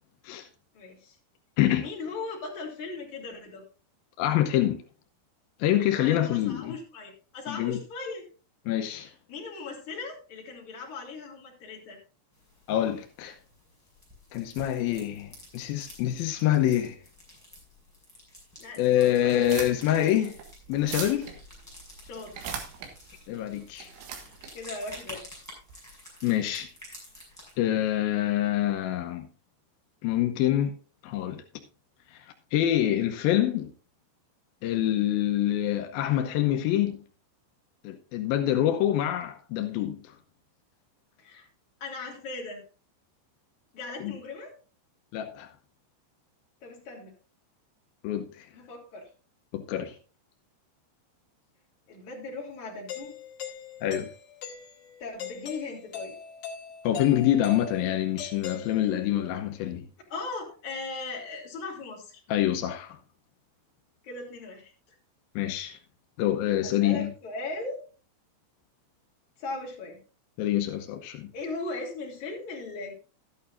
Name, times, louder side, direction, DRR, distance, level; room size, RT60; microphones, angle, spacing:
voice 1, 0.7-1.2 1.7-3.6 6.0-8.2 9.3-12.0 18.6-19.5 22.0-22.6 24.5-25.3 41.2-41.5 41.8-42.6 43.7-44.5 46.6-47.1 48.5-49.1 51.9-53.2 55.0-56.2 60.1-62.2 64.0-64.7 66.6-67.8 69.4-70.0 71.3-72.9, left 3 dB, 45° left, 4.0 m, -38 dB
voice 2, 1.6-1.9 4.2-4.8 5.6-6.8 7.5-7.8 8.7-9.1 12.7-13.4 14.3-17.0 18.8-20.4 20.7-21.3 23.3-23.9 26.2-26.7 27.6-29.3 30.0-30.7 31.0-31.4 32.5-33.7 34.6-37.0 37.8-40.1 44.0-44.2 45.1-45.5 48.0-48.5 49.5-50.0 53.8-54.1 56.8-59.8 62.3-63.0 65.4-65.8 66.2-67.1 70.4-71.3, left 12 dB, 80° left, 2.1 m, -26 dB
sound 1, 12.3-27.5, left 1 dB, 5° right, 5.2 m, -50 dB
sound 2, 19.3-25.7, right 7 dB, 75° right, 3.9 m, -41 dB
Doorbell, 52.9-59.2, left 8 dB, 65° left, 3.8 m, -41 dB
12.5 x 11.0 x 2.5 m
omnidirectional pair, 5.4 m